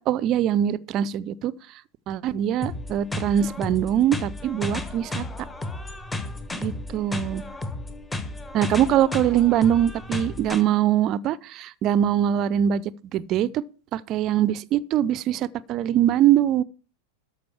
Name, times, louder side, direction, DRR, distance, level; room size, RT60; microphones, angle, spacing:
voice 1, 0.0-1.5 2.1-5.3 6.5-7.4 8.5-12.8 13.1-13.6 13.9-16.6, right 10 dB, 35° right, 0.5 m, -22 dB
sound 1, 2.6-10.6, left 2 dB, 10° left, 1.2 m, -33 dB
13.0 x 5.3 x 7.1 m
figure-of-eight pair, 90°, 0 cm